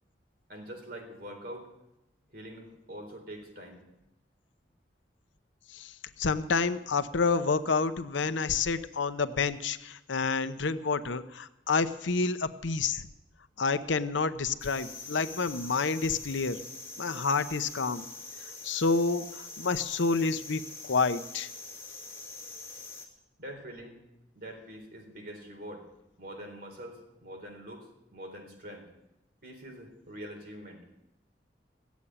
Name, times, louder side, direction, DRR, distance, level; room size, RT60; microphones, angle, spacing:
voice 1, 0.5-1.7 2.3-3.8 23.4-24.0 24.4-25.9 26.2-28.9 29.4-30.8, equal, 55° right, 2 dB, 4.0 m, -44 dB
voice 2, 5.7-13.1 13.6-16.6 17.0-18.0 18.6-21.5, left 4 dB, 85° left, 11 dB, 0.8 m, -29 dB
sound 1, 14.6-23.1, left 3 dB, 15° left, 2.3 m, -44 dB
16.5 x 8.3 x 10.0 m, 0.91 s
head